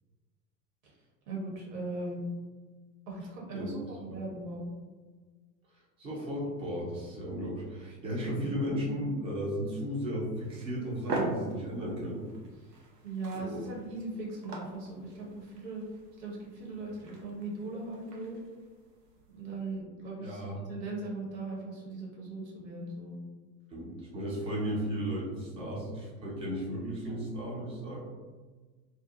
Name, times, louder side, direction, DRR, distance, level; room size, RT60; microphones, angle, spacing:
voice 1, 1.3-2.3 3.1-4.7 8.4-8.5 13.0-15.8 16.2-18.4 19.3-23.2 27.0-27.2, right 2 dB, 40° right, -2 dB, 0.8 m, -39 dB
voice 2, 6.0-12.3 13.3-13.7 20.2-20.6 23.7-28.0, equal, 15° right, -5 dB, 0.4 m, -35 dB
sound 1, 10.3-19.8, right 2 dB, 75° right, 0.7 m, -42 dB
2.6 x 2.3 x 2.5 m, 1.4 s
figure-of-eight pair, 80°, 49 cm